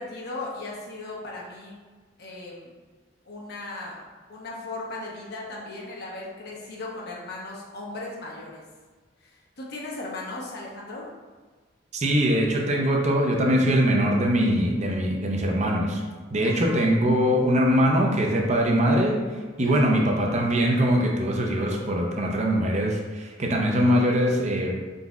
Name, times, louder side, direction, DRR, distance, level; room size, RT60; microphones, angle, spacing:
voice 1, 0.0-1.8 2.2-2.7 3.3-4.0 4.3-8.6 9.2-11.1 16.4-16.9 19.6-20.0, left 2 dB, 60° left, -3 dB, 0.9 m, -37 dB
voice 2, 11.9-16.0 16.3-19.2 19.6-24.7, equal, 40° right, 0 dB, 0.6 m, -22 dB
4.0 x 3.9 x 2.3 m, 1.4 s
head